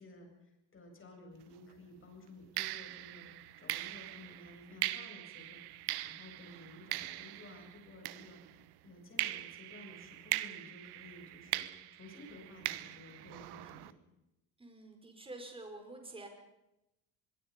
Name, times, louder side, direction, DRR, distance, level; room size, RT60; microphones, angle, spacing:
voice 1, 0.0-8.4 8.8-11.7 11.9-14.0, left 2 dB, 25° left, 2 dB, 7.8 m, -54 dB
snapping in stairway, 1.4-1.6 2.6-8.7 9.2-13.9, right 16 dB, 55° right, 1.1 m, -41 dB
voice 2, 14.6-16.3, right 2 dB, 10° right, 3 dB, 5.3 m, -48 dB
24.5 x 23.0 x 5.4 m, 0.90 s
cardioid pair, 120°, 47 cm